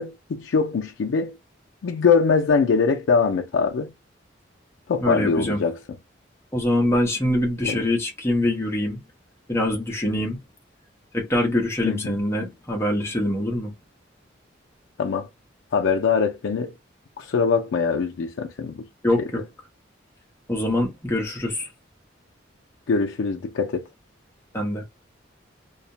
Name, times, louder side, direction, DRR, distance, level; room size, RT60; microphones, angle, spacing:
voice 1, 0.0-1.4 1.8-3.9 4.9-5.8 7.6-7.9 11.8-12.2 15.0-15.3 15.7-16.7 17.2-18.9 19.2-19.4 22.9-23.8, left 5 dB, 80° left, 0.4 m, -22 dB
voice 2, 5.0-5.6 6.5-9.0 9.5-10.4 11.1-13.7 19.0-19.4 20.5-21.7 24.5-24.8, left 1 dB, 15° left, 0.7 m, -24 dB
2.3 x 2.0 x 2.7 m
head